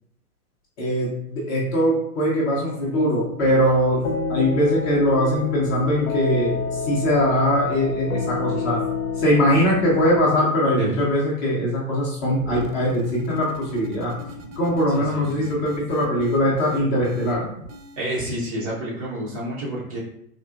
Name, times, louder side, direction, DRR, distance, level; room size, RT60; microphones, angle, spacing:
voice 1, 0.8-8.8 9.1-14.1 14.6-17.4, equal, 20° left, -5 dB, 0.6 m, -21 dB
sound 1, 3.4-10.3, left 4 dB, 65° left, 0.7 m, -29 dB
Dropping and buzzing, 12.3-18.1, right 2 dB, 55° right, 0.7 m, -40 dB
voice 2, 14.9-15.5 18.0-20.0, right 1 dB, 25° right, -5 dB, 0.5 m, -29 dB
3.7 x 2.7 x 2.4 m, 0.73 s
figure-of-eight pair, 115°, 47 cm